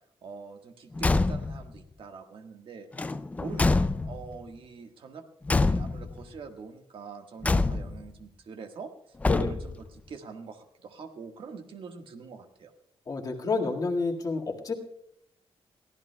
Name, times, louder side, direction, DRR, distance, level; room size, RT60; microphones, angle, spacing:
voice 1, 0.2-2.9 3.3-12.7, right 5 dB, 60° right, 5 dB, 1.5 m, -44 dB
Car / Truck / Slam, 0.9-1.7 2.9-4.4 5.5-6.2 7.4-8.1 9.2-9.9, left 3 dB, 15° left, 0.4 m, -26 dB
voice 2, 13.1-14.7, left 3 dB, 35° left, 1 dB, 1.8 m, -29 dB
23.0 x 16.0 x 2.2 m, 0.75 s
wide cardioid pair, 175°, 10 cm